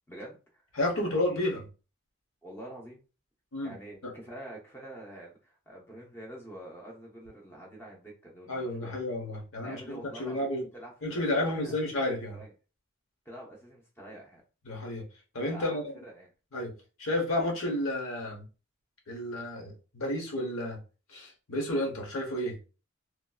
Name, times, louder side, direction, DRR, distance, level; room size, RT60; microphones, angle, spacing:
voice 1, 0.1-0.6 0.9-1.6 2.4-3.0 3.6-9.0 9.6-11.8 12.3-12.5 13.3-14.4 15.5-16.3, right 1 dB, 10° left, -2 dB, 0.7 m, -46 dB
voice 2, 0.8-1.6 3.5-3.7 4.0-4.1 8.5-10.7 11.0-12.4 14.7-15.0 15.3-15.9 16.5-16.7 17.0-18.4 19.1-20.8 21.1-22.7, left 1 dB, 80° left, 0 dB, 1.0 m, -31 dB
3.0 x 2.6 x 2.3 m, 0.33 s
head